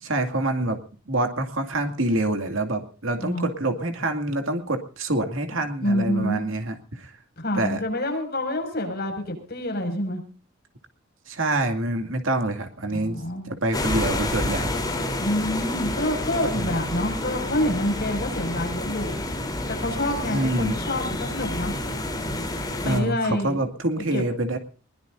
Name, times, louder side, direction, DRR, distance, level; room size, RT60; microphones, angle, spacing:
voice 1, 0.0-0.8 1.1-7.1 7.5-7.8 11.3-14.8 16.5-16.7 20.3-20.8 22.8-24.6, right 2 dB, 80° right, 6 dB, 2.5 m, -26 dB
voice 2, 5.8-6.5 7.4-10.2 12.9-13.6 15.2-19.2 19.7-21.7 22.8-23.6 24.1-24.2, left 1 dB, 50° left, 3 dB, 6.3 m, -27 dB
sound 1, 13.7-23.0, left 1 dB, 20° left, 3.7 m, -29 dB
21.5 x 21.0 x 2.7 m, 0.38 s
head